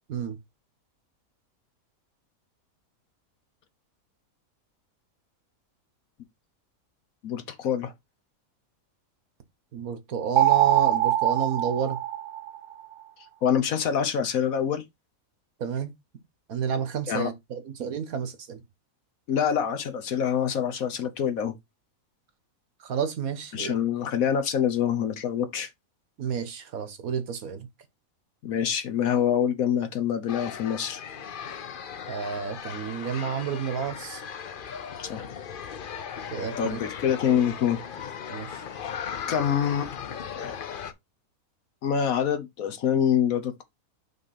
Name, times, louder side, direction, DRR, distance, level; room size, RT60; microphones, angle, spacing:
voice 1, 7.2-7.9 13.4-14.8 17.1-17.3 19.3-21.5 23.5-25.7 28.4-31.0 35.0-35.3 36.6-37.8 39.3-39.9 40.4-40.5 41.8-43.6, left 8 dB, 75° left, 1.4 m, -25 dB
voice 2, 9.7-12.0 15.6-15.9 16.5-18.6 22.8-23.7 26.2-27.7 32.1-34.2 36.3-36.8 38.3-38.6, right 7 dB, 80° right, 1.6 m, -31 dB
sound 1, 10.4-12.8, right 12 dB, 60° right, 0.6 m, -23 dB
sound 2, 30.3-40.9, left 7 dB, 50° left, 0.7 m, -37 dB
5.8 x 3.3 x 5.7 m
omnidirectional pair, 1.5 m